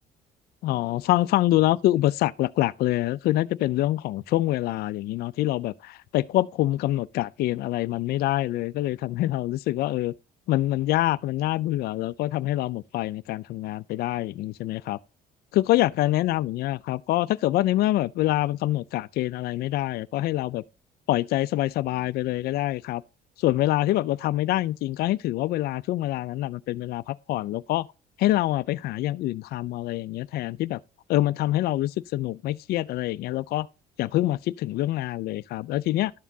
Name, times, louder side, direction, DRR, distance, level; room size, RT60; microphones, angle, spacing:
voice 1, 0.6-10.1 10.5-15.0 15.5-20.6 21.1-23.0 23.4-27.9 28.2-30.8 31.1-33.7 34.0-36.1, left 15 dB, 65° left, 0.4 m, -25 dB
11.0 x 7.2 x 2.7 m
cardioid pair, 110°, 17 cm